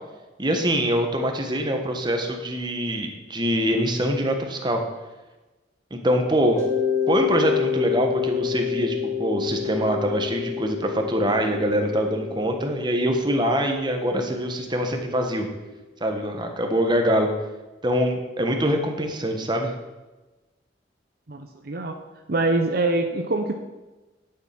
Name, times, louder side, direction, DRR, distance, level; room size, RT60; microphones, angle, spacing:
voice 1, 0.4-4.8 5.9-6.6 7.1-15.5 16.0-17.3 17.8-19.7, equal, 25° right, 4 dB, 1.3 m, -24 dB
Mallet percussion, 6.6-15.2, left 8 dB, 20° left, 3.0 m, -29 dB
voice 2, 21.3-22.0 22.3-23.5, right 2 dB, 55° right, 5 dB, 0.8 m, -24 dB
10.5 x 6.9 x 5.9 m, 1.1 s
head